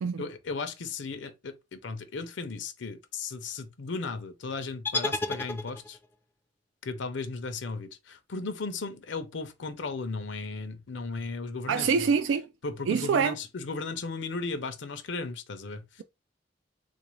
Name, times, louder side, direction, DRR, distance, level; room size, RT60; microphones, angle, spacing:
voice 1, 0.2-6.0 6.8-12.0 12.6-16.0, left 4 dB, 70° left, 0.6 m, -36 dB
sound 1, 4.9-6.2, left 2 dB, 10° left, 0.4 m, -32 dB
voice 2, 11.7-12.5 12.9-13.4, right 6 dB, 75° right, 0.3 m, -25 dB
3.6 x 2.5 x 3.0 m
head